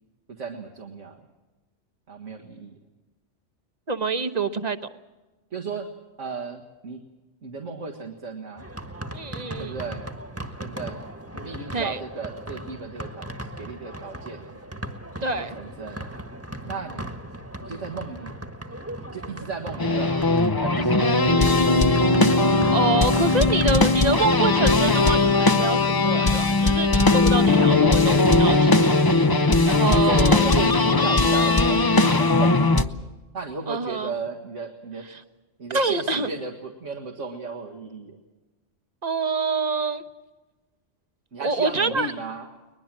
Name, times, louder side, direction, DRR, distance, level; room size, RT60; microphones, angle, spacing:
voice 1, 0.4-1.2 2.1-2.7 5.5-5.9 6.2-7.0 7.4-8.7 9.6-10.1 10.6-11.0 11.3-13.3 13.6-14.6 15.3-16.1 16.6-17.0 17.6-18.4 19.1-21.3 29.9-32.9 33.3-35.1 35.6-38.2 41.3-42.5, right 4 dB, 85° right, 2 dB, 2.1 m, -35 dB
voice 2, 3.9-4.8 9.1-9.8 11.7-12.0 15.2-15.6 22.7-29.1 29.7-30.5 33.7-34.1 35.1-35.2 35.7-36.3 39.0-40.0 41.4-42.1, right 3 dB, 35° right, 10 dB, 1.1 m, -26 dB
sound 1, 8.6-24.4, right 1 dB, 10° right, 1.4 m, -38 dB
sound 2, 19.8-32.8, left 3 dB, 25° left, 0.7 m, -19 dB
22.0 x 21.0 x 7.6 m, 1.2 s
omnidirectional pair, 1.2 m